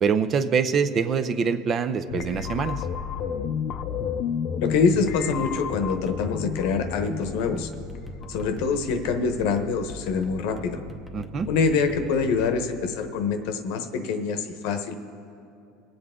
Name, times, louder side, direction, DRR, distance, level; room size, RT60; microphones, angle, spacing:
voice 1, 0.0-2.8 11.1-11.5, right 6 dB, 35° right, 11 dB, 0.5 m, -24 dB
sound 1, 2.1-9.0, left 7 dB, 45° left, 0.6 m, -31 dB
voice 2, 4.6-7.7 8.3-10.8 11.5-14.9, left 5 dB, 70° left, 8 dB, 1.0 m, -25 dB
sound 2, 4.7-12.5, left 2 dB, 5° right, 0.8 m, -41 dB
22.0 x 7.9 x 3.7 m, 2.6 s
supercardioid pair, 135°, 0 cm